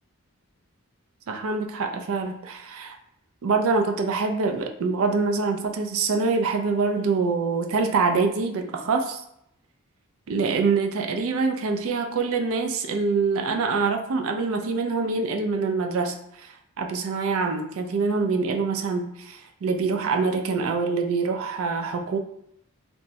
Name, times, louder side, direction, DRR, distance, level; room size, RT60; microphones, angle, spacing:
voice 1, 1.3-3.0 3.4-9.2 10.3-22.2, right 4 dB, 65° right, 4 dB, 0.4 m, -25 dB
3.3 x 2.0 x 2.7 m, 0.74 s
head